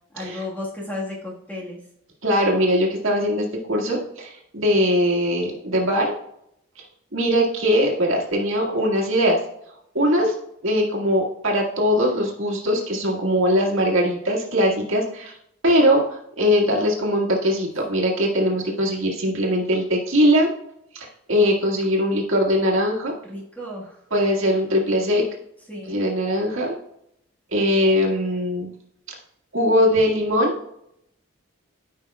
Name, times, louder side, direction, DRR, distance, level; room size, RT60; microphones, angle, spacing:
voice 1, 0.1-1.8 23.2-24.0 25.7-26.0, left 2 dB, 10° left, -3 dB, 1.5 m, -33 dB
voice 2, 2.2-6.1 7.1-9.4 9.9-10.4 10.6-15.4 15.6-20.5 20.9-23.1 24.1-25.3 25.9-26.7 27.5-28.7 29.5-30.6, equal, 65° right, -2 dB, 1.8 m, -21 dB
13.5 x 5.4 x 2.3 m, 0.75 s
head